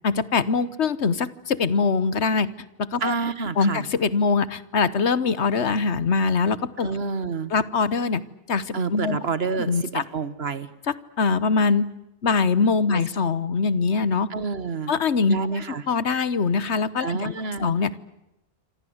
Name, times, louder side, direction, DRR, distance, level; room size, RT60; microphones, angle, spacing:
voice 1, 0.0-2.5 2.8-3.1 3.6-6.9 7.5-9.2 9.6-10.0 11.2-11.9 12.2-14.3 14.9-15.4 15.9-17.3 17.6-17.9, left 4 dB, 80° left, 17 dB, 1.5 m, -23 dB
voice 2, 3.0-3.8 6.8-7.5 8.7-10.7 12.9-13.0 14.3-14.9 15.3-15.9 17.0-17.7, right 4 dB, 65° right, 15 dB, 1.7 m, -28 dB
27.5 x 26.0 x 8.0 m, 0.90 s
omnidirectional pair, 1.1 m